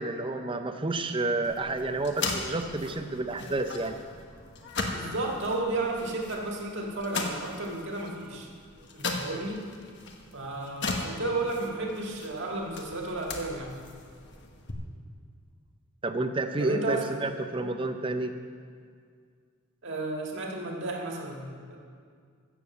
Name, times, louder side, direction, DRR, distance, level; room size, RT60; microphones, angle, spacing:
voice 1, 0.0-4.0 16.0-18.3, right 2 dB, 25° right, 7 dB, 0.6 m, -30 dB
sound 1, 1.4-14.7, left 3 dB, 50° left, 1.3 m, -38 dB
voice 2, 4.9-8.5 8.9-9.6 10.3-13.7 16.6-17.0 19.8-21.4 21.7-21.8, right 2 dB, 55° right, 0 dB, 1.9 m, -33 dB
14.5 x 7.5 x 7.1 m, 2.1 s
head